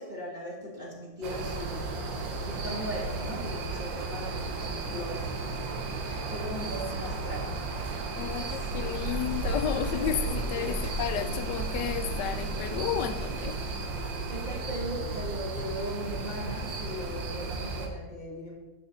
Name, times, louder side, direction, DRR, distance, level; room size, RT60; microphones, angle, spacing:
voice 1, 0.0-1.9 2.4-5.7 6.3-7.5 8.5-8.9 10.6-11.0 14.1-18.6, equal, 25° right, -7 dB, 2.0 m, -38 dB
sound 1, 1.2-17.9, right 3 dB, 80° right, 1.7 m, -33 dB
voice 2, 8.2-13.6, left 10 dB, 75° left, 10 dB, 1.2 m, -32 dB
8.4 x 4.3 x 6.9 m, 1.1 s
omnidirectional pair, 2.0 m